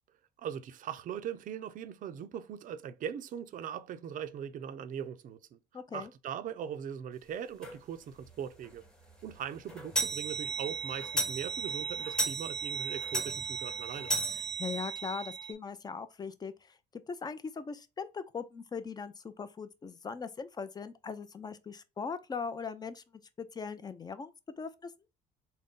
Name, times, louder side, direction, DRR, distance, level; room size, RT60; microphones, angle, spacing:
voice 1, 0.4-5.6 5.9-8.8 9.2-14.1, right 8 dB, 50° right, 0.5 m, -40 dB
voice 2, 5.7-6.1 14.3-16.8 17.1-23.0 23.4-24.3 24.6-24.9, left 5 dB, 25° left, 0.5 m, -40 dB
sound 1, 7.6-7.8 8.2-8.3 8.7-8.8 9.1-15.5, right 3 dB, 5° left, 0.8 m, -35 dB
3.9 x 2.1 x 3.6 m
cardioid pair, 110°, 17 cm